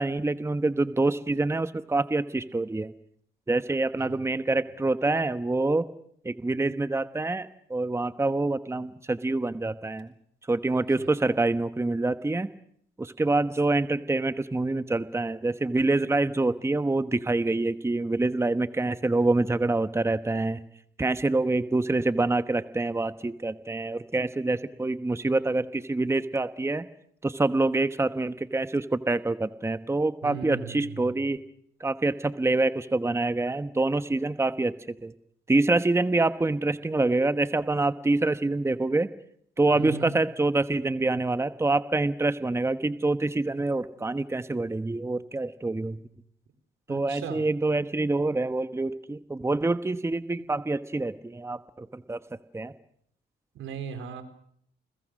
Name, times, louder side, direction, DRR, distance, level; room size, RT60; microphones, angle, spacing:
voice 1, 0.0-2.9 3.5-5.9 6.2-10.1 10.5-12.5 13.0-20.6 21.0-26.9 27.2-31.4 31.8-34.7 35.0-35.1 35.5-39.1 39.6-46.0 46.9-52.2 52.5-52.7, right 2 dB, 15° right, 11 dB, 1.1 m, -26 dB
voice 2, 4.0-4.7 10.7-11.4 30.2-31.3 39.7-40.2 46.9-47.5 50.4-50.5 53.5-54.2, right 6 dB, 80° right, 9 dB, 4.0 m, -39 dB
29.5 x 21.5 x 6.4 m, 0.68 s
cardioid pair, 90°, 20 cm